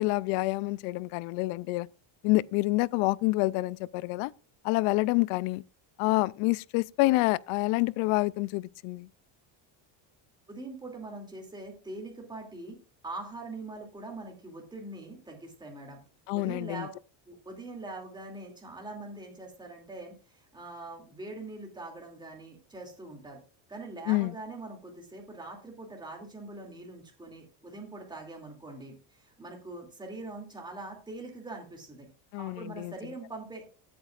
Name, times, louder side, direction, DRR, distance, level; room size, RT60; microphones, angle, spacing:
voice 1, 0.0-1.9 2.2-4.3 4.6-5.6 6.0-9.1 16.3-16.9 24.1-24.3 32.3-32.9, left 21 dB, 90° left, 0.6 m, -27 dB
voice 2, 10.5-12.8 13.0-16.0 16.3-16.9 17.3-23.4 23.7-32.1 32.4-33.7, right 2 dB, 10° right, 2.6 m, -43 dB
16.0 x 8.6 x 2.5 m
cardioid pair, 165°, 49 cm